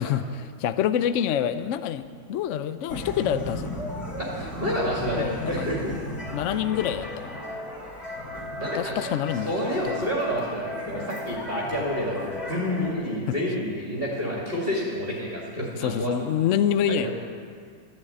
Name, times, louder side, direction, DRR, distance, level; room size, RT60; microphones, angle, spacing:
voice 1, 0.0-3.7 5.2-5.7 6.3-7.4 8.7-9.5 9.8-10.1 15.8-17.1, left 9 dB, 80° left, 12 dB, 0.6 m, -26 dB
sound 1, 2.9-12.9, left 1 dB, 15° left, 3.4 m, -35 dB
voice 2, 4.2-6.0 8.6-9.1 9.4-16.1 16.9-17.1, equal, 30° right, -5 dB, 2.5 m, -29 dB
13.5 x 11.0 x 8.7 m, 2.1 s
omnidirectional pair, 2.1 m